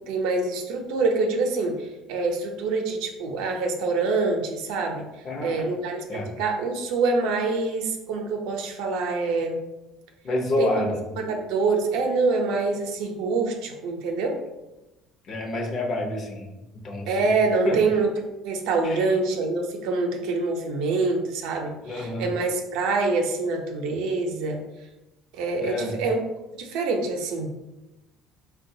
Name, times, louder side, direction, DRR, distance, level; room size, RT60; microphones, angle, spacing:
voice 1, 0.1-5.0 5.4-9.6 10.6-10.8 11.2-14.4 17.1-18.1 18.4-24.6 25.3-26.2 26.5-27.5, right 3 dB, 80° right, 3 dB, 0.5 m, -25 dB
voice 2, 5.2-5.6 6.1-6.3 10.2-11.0 15.3-16.5 16.8-17.3 17.6-17.8 18.8-19.1 21.9-22.3 25.6-26.0, left 1 dB, 40° left, 1 dB, 0.6 m, -28 dB
3.7 x 2.2 x 2.6 m, 1.0 s
cardioid pair, 130°, 0 cm